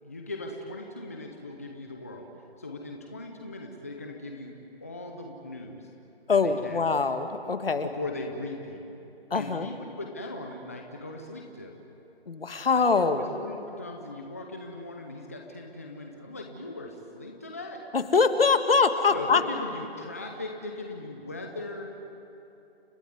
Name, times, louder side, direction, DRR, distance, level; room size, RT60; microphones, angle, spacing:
voice 1, 0.0-2.3 2.6-4.5 4.8-5.9 6.4-6.8 7.8-8.8 9.3-11.7 12.7-17.8 19.1-21.9, left 2 dB, 15° left, 2 dB, 0.7 m, -39 dB
voice 2, 6.3-7.9 9.3-9.7 12.3-13.2 17.9-19.4, left 4 dB, 65° left, 8 dB, 1.7 m, -23 dB
30.0 x 13.0 x 9.7 m, 2.9 s
hypercardioid pair, 170°, 31 cm